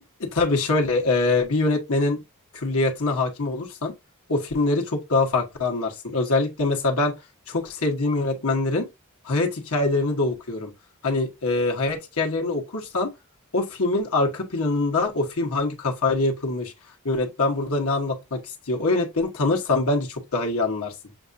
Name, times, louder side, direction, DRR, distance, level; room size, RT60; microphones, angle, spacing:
voice 1, 0.2-2.2 2.5-3.9 4.3-7.1 7.5-8.9 9.2-10.7 11.0-13.1 13.5-16.7 17.0-20.9, left 2 dB, 65° left, 1.1 m, -24 dB
7.0 x 2.4 x 2.6 m
head